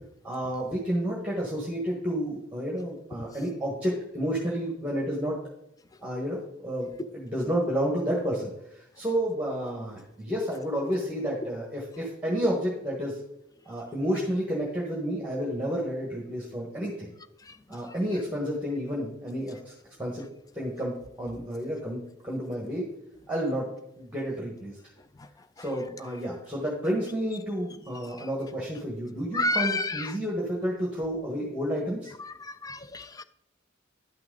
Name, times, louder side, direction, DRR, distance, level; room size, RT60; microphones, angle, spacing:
voice 1, 0.2-5.4 6.0-13.2 13.6-17.1 17.7-19.7 20.0-20.2 20.5-22.9 23.3-23.7 24.0-24.8 25.6-32.1, equal, 5° right, -3 dB, 1.4 m, -30 dB
voice 2, 29.3-30.1 32.6-33.2, left 2 dB, 20° left, 12 dB, 0.3 m, -28 dB
11.0 x 5.9 x 3.9 m, 0.83 s
head